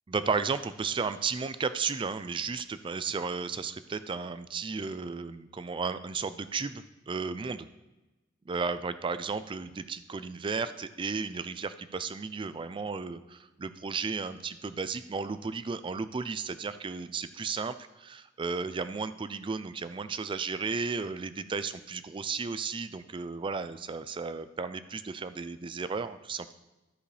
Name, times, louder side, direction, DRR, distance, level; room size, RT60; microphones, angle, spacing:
voice 1, 0.1-7.7 8.5-26.5, right 5 dB, 25° right, 13 dB, 0.3 m, -34 dB
13.5 x 5.1 x 3.3 m, 1.0 s
head